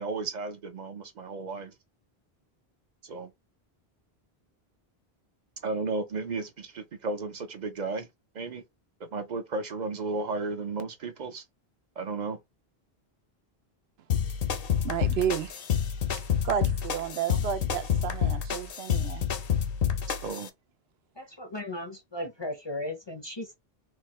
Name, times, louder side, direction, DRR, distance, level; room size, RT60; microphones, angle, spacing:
voice 1, 0.0-1.7 3.0-3.3 5.6-8.1 8.3-8.6 9.1-11.4 12.0-12.4 20.2-20.5, right 3 dB, 50° right, 0.7 m, -34 dB
sound 1, 14.1-20.5, left 8 dB, 65° left, 0.8 m, -28 dB
voice 2, 14.8-15.7 16.1-19.3, right 8 dB, 80° right, 0.8 m, -32 dB
voice 3, 21.2-23.6, left 1 dB, 30° left, 0.6 m, -36 dB
4.5 x 2.2 x 3.0 m
omnidirectional pair, 1.1 m